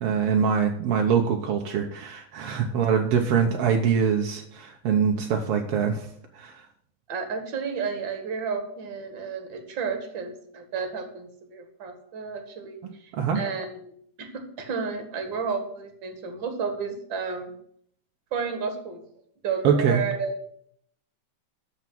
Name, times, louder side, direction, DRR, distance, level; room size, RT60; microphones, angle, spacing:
voice 1, 0.0-6.1 6.3-6.5 13.1-13.5 19.6-20.0, right 7 dB, 75° right, 3 dB, 1.4 m, -24 dB
voice 2, 7.1-13.9 14.2-17.5 18.3-19.0 19.4-20.3, right 5 dB, 45° right, 6 dB, 1.8 m, -32 dB
13.0 x 4.8 x 7.6 m, 0.68 s
omnidirectional pair, 3.8 m